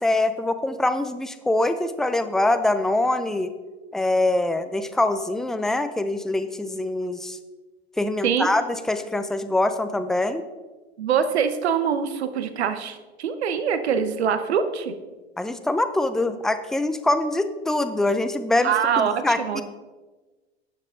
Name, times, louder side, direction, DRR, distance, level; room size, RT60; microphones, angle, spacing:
voice 1, 0.0-3.5 3.9-7.4 8.0-10.4 15.4-19.6, left 2 dB, ahead, 10 dB, 0.5 m, -24 dB
voice 2, 11.0-14.9 18.6-19.6, right 7 dB, 80° right, 10 dB, 1.0 m, -24 dB
11.5 x 7.5 x 3.8 m, 1.2 s
hypercardioid pair, 95°, 32 cm